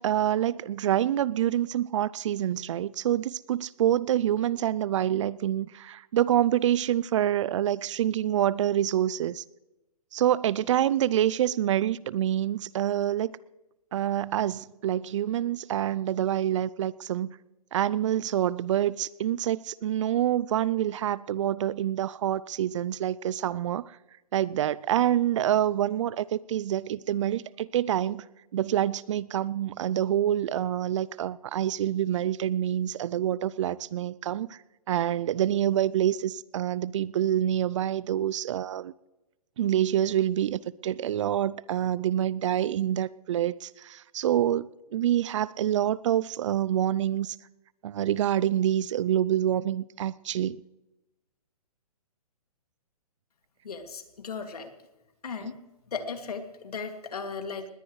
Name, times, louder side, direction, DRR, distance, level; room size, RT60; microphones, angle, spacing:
voice 1, 0.0-9.4 10.1-13.3 13.9-17.4 17.7-23.9 24.3-28.2 28.5-34.6 34.9-38.9 39.6-47.4 47.8-50.6, right 11 dB, 50° right, 0.5 m, -26 dB
voice 2, 53.6-54.7 55.2-55.6 55.9-57.7, left 5 dB, 75° left, 2.5 m, -36 dB
20.0 x 17.5 x 3.2 m
hypercardioid pair, 130°, 20 cm